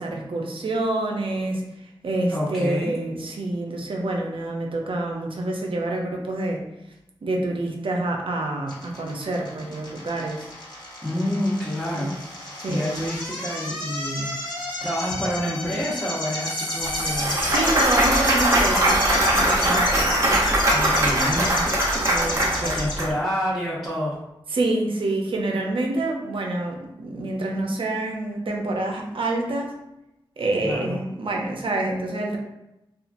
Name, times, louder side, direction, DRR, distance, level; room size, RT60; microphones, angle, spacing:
voice 1, 0.0-6.6 7.2-10.5 11.9-12.1 12.6-13.1 17.0-20.3 22.1-22.7 24.5-29.8 30.4-32.4, right 2 dB, 70° right, 1 dB, 0.6 m, -27 dB
voice 2, 2.3-2.9 11.0-17.6 20.7-21.5 22.6-24.2 30.6-31.0, equal, 5° left, -10 dB, 0.9 m, -28 dB
sound 1, 8.7-23.0, left 1 dB, 50° left, 1.1 m, -30 dB
Clapping / Cheering / Applause, 16.9-23.1, right 1 dB, 35° right, 0.8 m, -21 dB
2.8 x 2.4 x 2.5 m, 0.91 s
cardioid pair, 50°, 9 cm